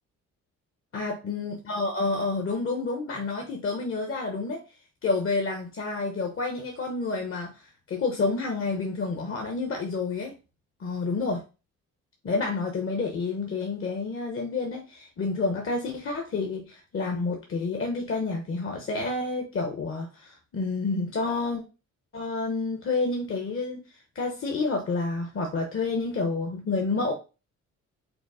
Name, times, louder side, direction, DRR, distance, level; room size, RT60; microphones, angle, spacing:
voice 1, 0.9-4.6 5.0-10.3 10.8-11.4 12.2-21.6 22.1-27.1, left 3 dB, 45° left, 1.0 m, -29 dB
5.1 x 2.1 x 4.8 m
cardioid pair, 90°, 30 cm